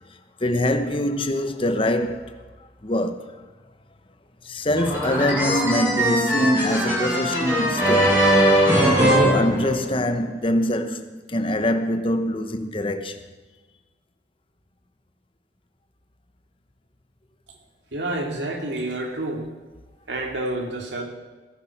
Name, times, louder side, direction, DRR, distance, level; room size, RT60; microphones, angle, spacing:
voice 1, 0.4-2.4 2.8-3.4 4.4-8.2 8.8-13.2, left 1 dB, 30° left, 1.0 m, -24 dB
sound 1, 4.8-10.2, equal, 10° right, 6.6 m, -20 dB
voice 2, 17.9-19.5 20.1-21.0, right 1 dB, 90° right, 2.6 m, -28 dB
19.5 x 11.5 x 5.9 m
head